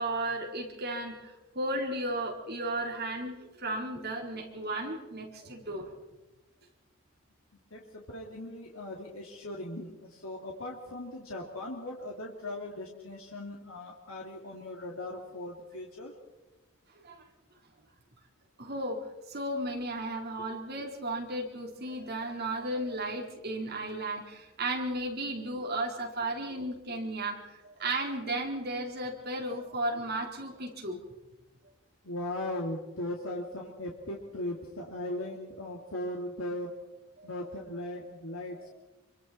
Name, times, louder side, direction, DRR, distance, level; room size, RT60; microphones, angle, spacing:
voice 1, 0.0-5.9 17.0-17.3 18.6-31.0 37.2-37.3 38.6-38.7, right 1 dB, 45° right, 0 dB, 4.2 m, -34 dB
voice 2, 7.7-16.1 32.0-36.8 37.2-38.7, left 1 dB, 80° left, -1 dB, 2.9 m, -38 dB
26.0 x 25.0 x 4.4 m, 1.1 s
head